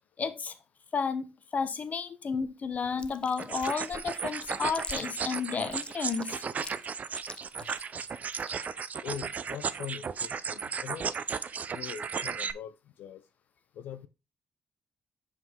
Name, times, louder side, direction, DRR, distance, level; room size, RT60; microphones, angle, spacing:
voice 1, 0.2-0.5 0.9-6.4, left 5 dB, 50° left, 0.8 m, -32 dB
Chewing mastication, 3.0-8.6, left 4 dB, 30° left, 0.5 m, -45 dB
sound 1, 3.4-12.5, right 6 dB, 50° right, 0.4 m, -35 dB
voice 2, 9.0-11.0 11.7-12.7 13.0-13.2 13.8-14.1, left 9 dB, 85° left, 0.4 m, -42 dB
5.7 x 4.8 x 3.6 m
cardioid pair, 70°, 3 cm